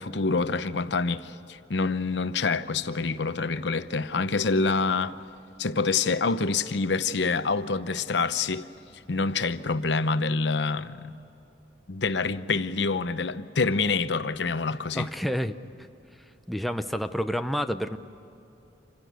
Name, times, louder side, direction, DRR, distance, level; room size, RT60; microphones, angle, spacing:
voice 1, 0.0-5.2 5.6-8.7 9.1-11.2 11.9-15.1, left 4 dB, 70° left, 0.8 m, -26 dB
voice 2, 14.9-15.6 16.5-18.0, equal, ahead, 0.6 m, -29 dB
27.0 x 16.5 x 9.4 m
head